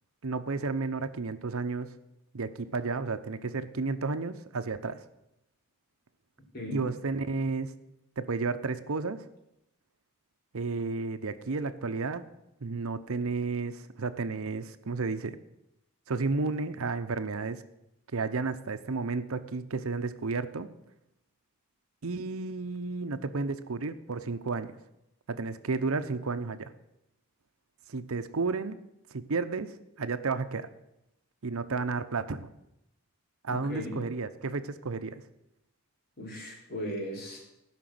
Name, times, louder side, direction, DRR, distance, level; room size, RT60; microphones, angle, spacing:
voice 1, 0.2-1.9 2.3-5.0 6.7-7.7 8.2-9.2 10.5-12.2 12.6-15.4 16.1-17.6 18.1-20.7 22.0-24.7 25.3-26.7 27.9-28.8 29.1-30.7 31.4-32.5 33.4-35.2, right 4 dB, 75° right, 11 dB, 0.7 m, -32 dB
voice 2, 33.5-33.9 36.2-37.4, equal, 45° left, -3 dB, 4.2 m, -37 dB
15.5 x 6.0 x 7.8 m, 0.87 s
head